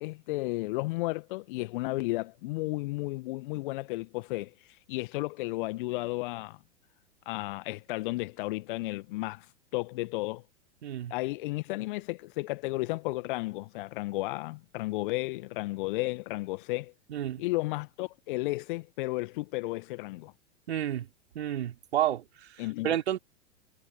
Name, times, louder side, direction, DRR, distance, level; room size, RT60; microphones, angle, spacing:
voice 1, 0.0-4.5 4.9-6.6 7.2-9.4 9.7-10.4 11.1-16.9 17.4-20.3 22.6-23.2, left 21 dB, 45° left, 1.6 m, -33 dB
voice 2, 10.8-11.1 17.1-17.4 20.7-21.1 21.4-22.2 22.8-23.2, right 11 dB, 60° right, 3.7 m, -30 dB
figure-of-eight pair, 100°, 36 cm